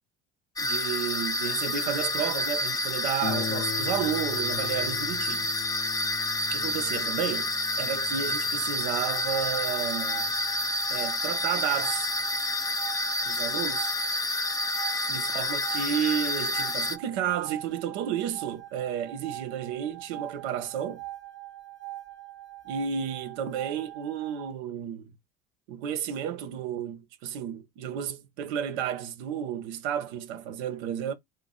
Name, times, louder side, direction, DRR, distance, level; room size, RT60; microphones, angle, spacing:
sound 1, 0.6-17.0, left 2 dB, 10° left, 0.5 m, -29 dB
voice 1, 0.6-5.5 6.5-10.3 10.9-12.1 13.2-13.9 15.1-21.0 22.6-25.1 25.7-31.1, right 9 dB, 80° right, 0.6 m, -32 dB
Harp, 3.2-12.4 13.2-13.3 13.8-13.9, left 8 dB, 45° left, 0.7 m, -41 dB
sound 2, 8.7-24.5, right 16 dB, 35° right, 0.6 m, -43 dB
2.4 x 2.2 x 3.8 m
hypercardioid pair, 60°, 33 cm